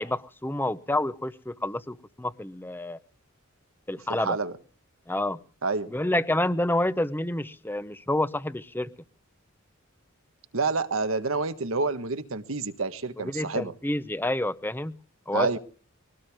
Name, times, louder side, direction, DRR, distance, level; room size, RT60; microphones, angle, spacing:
voice 1, 0.0-3.0 3.9-4.4 5.1-5.4 5.9-8.9 13.2-15.0 15.3-15.6, left 1 dB, 10° left, 0.8 m, -28 dB
voice 2, 4.1-4.5 5.6-5.9 10.5-13.7 15.3-15.6, right 3 dB, 85° right, 1.4 m, -28 dB
22.0 x 18.0 x 3.6 m
head